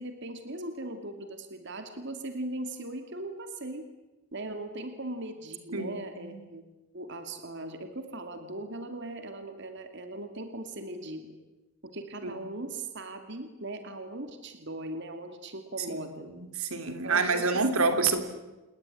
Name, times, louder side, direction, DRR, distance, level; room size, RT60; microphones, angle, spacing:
voice 1, 0.0-3.9 4.3-6.6 6.9-11.4 11.8-16.3 16.9-17.9, right 2 dB, 55° right, 7 dB, 2.7 m, -39 dB
voice 2, 5.7-6.4 12.2-12.4 15.9-18.3, right 4 dB, 80° right, 9 dB, 3.2 m, -28 dB
29.0 x 20.0 x 9.9 m, 1.1 s
head